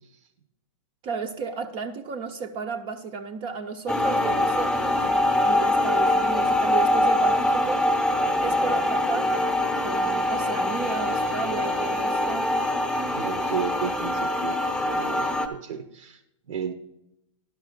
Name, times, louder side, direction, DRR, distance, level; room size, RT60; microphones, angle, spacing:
voice 1, 1.0-7.9 8.4-12.5, right 5 dB, 30° right, 0.6 m, -33 dB
sound 1, 3.9-15.5, left 1 dB, ahead, 0.8 m, -24 dB
voice 2, 13.1-16.2 16.5-16.7, right 7 dB, 80° right, 0.9 m, -33 dB
11.0 x 6.0 x 5.1 m
hypercardioid pair, 130°, 17 cm